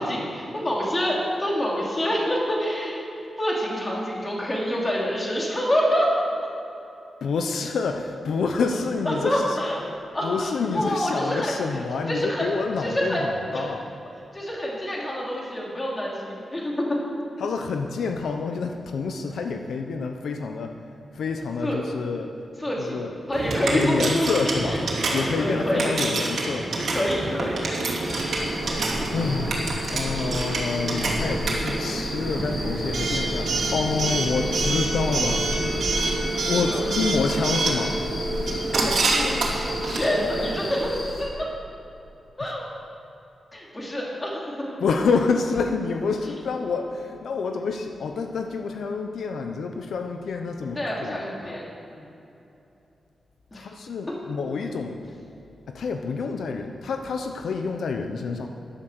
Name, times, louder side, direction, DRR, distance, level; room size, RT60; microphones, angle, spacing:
voice 1, 0.0-3.0 3.4-6.3 9.0-9.9 10.1-11.6 12.1-12.5 12.8-13.7 14.3-17.0 21.6-21.8 22.6-24.3 24.6-24.8 25.1-26.0 26.9-28.0 36.7-36.9 38.7-41.5 42.4-42.7 43.5-44.7 50.7-52.1 53.5-53.7, equal, 20° left, -3 dB, 2.8 m, -27 dB
voice 2, 7.2-9.6 10.2-13.8 17.4-20.7 21.1-22.3 22.9-23.1 23.7-24.8 25.1-26.7 29.1-35.5 36.5-38.0 42.4-42.5 44.8-51.6 53.5-55.0 55.7-58.5, left 4 dB, 80° left, 5 dB, 0.9 m, -28 dB
Coin (dropping) / Alarm, 23.3-40.8, right 2 dB, 65° right, 2.8 m, -27 dB
sound 1, 28.0-41.2, left 1 dB, 45° left, 4.0 m, -33 dB
13.5 x 11.5 x 6.2 m, 2.9 s
wide cardioid pair, 170°, 0 cm